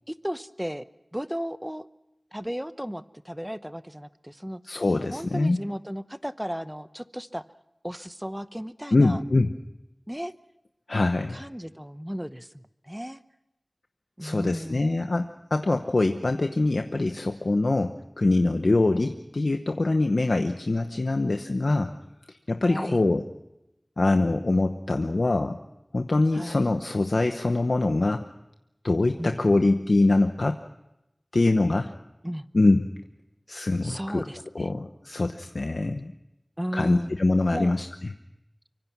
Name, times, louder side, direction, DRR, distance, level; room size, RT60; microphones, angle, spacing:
voice 1, 0.1-0.8 1.1-1.9 2.3-4.6 5.1-7.4 7.8-9.2 10.1-10.3 11.3-13.2 14.2-15.0 22.6-23.0 26.3-26.6 29.2-29.5 32.2-32.5 33.8-34.7 36.6-37.1 37.5-37.8, equal, 10° right, 12 dB, 0.9 m, -35 dB
voice 2, 4.7-5.6 8.9-9.5 10.9-11.4 14.2-21.9 22.3-23.2 24.0-25.6 25.9-28.2 28.8-30.6 31.3-31.9 32.5-32.9 33.5-34.3 34.5-36.1 36.7-37.9, left 2 dB, 90° left, 6 dB, 0.9 m, -24 dB
25.0 x 24.0 x 6.0 m, 0.89 s
wide cardioid pair, 40°, 0 cm